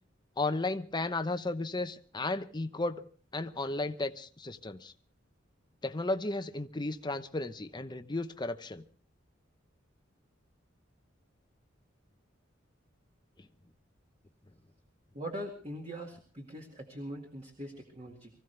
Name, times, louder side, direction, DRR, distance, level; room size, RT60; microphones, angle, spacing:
voice 1, 0.4-3.0 3.3-4.9 5.8-8.8, left 2 dB, 25° left, 0.8 m, -34 dB
voice 2, 15.1-18.3, equal, 35° right, 2.1 m, -42 dB
24.0 x 15.5 x 3.4 m
head